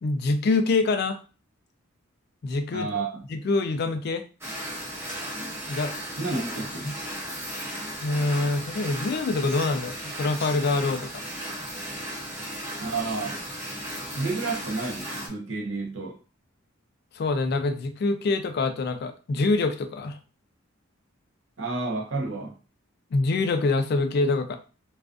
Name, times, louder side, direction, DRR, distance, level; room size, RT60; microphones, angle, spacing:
voice 1, 0.0-1.2 2.4-2.9 3.3-4.2 5.7-6.0 6.8-6.9 8.0-11.1 17.1-20.2 23.1-24.6, left 3 dB, 50° left, 0.3 m, -25 dB
voice 2, 2.7-3.2 6.2-6.9 12.8-13.4 14.1-16.2 21.6-22.5, right 3 dB, 65° right, 0.6 m, -30 dB
sound 1, 4.4-15.3, equal, 10° right, 0.5 m, -35 dB
2.3 x 2.2 x 2.4 m
head